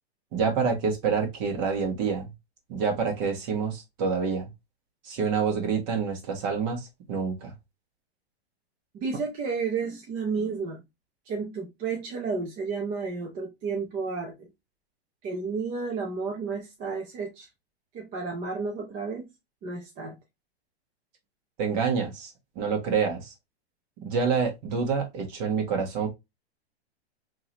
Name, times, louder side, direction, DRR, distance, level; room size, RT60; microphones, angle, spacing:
voice 1, 0.3-2.3 2.7-4.5 5.0-7.5 21.6-23.3 24.0-26.1, right 5 dB, 40° right, 1.4 m, -27 dB
voice 2, 8.9-10.8 11.3-14.5 15.2-17.5 17.9-19.3 19.6-20.2, right 4 dB, 25° right, 0.7 m, -32 dB
3.8 x 2.8 x 3.0 m
hypercardioid pair, 140°, 32 cm